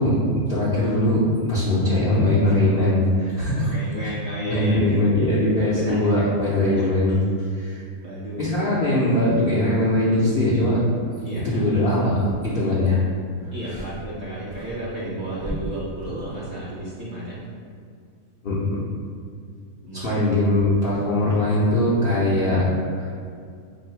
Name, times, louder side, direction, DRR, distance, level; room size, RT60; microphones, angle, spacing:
voice 1, 0.0-3.7 4.5-7.1 7.5-7.8 8.4-10.8 11.4-13.0 13.7-13.8 18.4-18.8 19.9-22.7 22.9-23.1, left 1 dB, 55° left, -8 dB, 0.6 m, -21 dB
voice 2, 3.5-4.9 5.8-6.8 8.0-8.6 11.2-11.6 13.5-17.4 19.8-20.2, right 1 dB, 40° right, -7 dB, 0.9 m, -32 dB
sound 1, 12.3-12.8 13.4-14.2 14.5-16.5, equal, 60° right, 0.3 m, -37 dB
3.3 x 2.7 x 4.4 m, 2.3 s
omnidirectional pair, 1.6 m